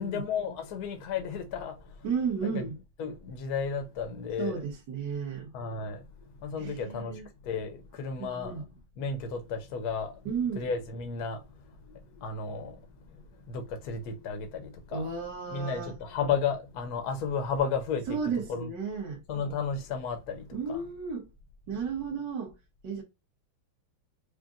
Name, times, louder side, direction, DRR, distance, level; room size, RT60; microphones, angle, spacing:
voice 1, 0.0-2.0 2.4-2.6 3.0-4.6 5.5-8.6 9.0-10.2 10.6-12.9 13.1-15.1 15.5-18.2 18.5-18.7 19.3-20.8, left 5 dB, 60° left, 1.2 m, -33 dB
voice 2, 2.0-2.8 4.4-5.5 6.6-7.3 8.2-8.6 10.2-10.7 14.9-16.0 18.1-19.2 20.5-21.3 21.7-22.5 22.8-23.0, right 5 dB, 65° right, 1.7 m, -33 dB
5.0 x 2.7 x 2.4 m
omnidirectional pair, 2.1 m